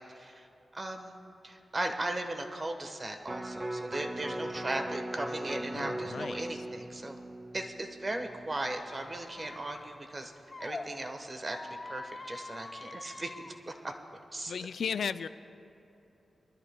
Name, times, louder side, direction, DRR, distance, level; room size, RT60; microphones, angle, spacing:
voice 1, 0.2-0.5 0.7-1.2 1.4-7.2 7.5-10.3 10.6-13.9 14.3-14.5, right 1 dB, 35° right, 4 dB, 1.1 m, -37 dB
Electric guitar, 3.2-9.5 9.9-10.0, right 1 dB, 15° right, 0.7 m, -40 dB
voice 2, 5.7-6.4 14.5-15.3, left 6 dB, 85° left, 13 dB, 0.3 m, -35 dB
Squeak, 8.9-10.8 11.4-13.5, left 3 dB, 45° left, 0.9 m, -45 dB
23.5 x 12.5 x 2.2 m, 2.9 s
wide cardioid pair, 80°, 0 cm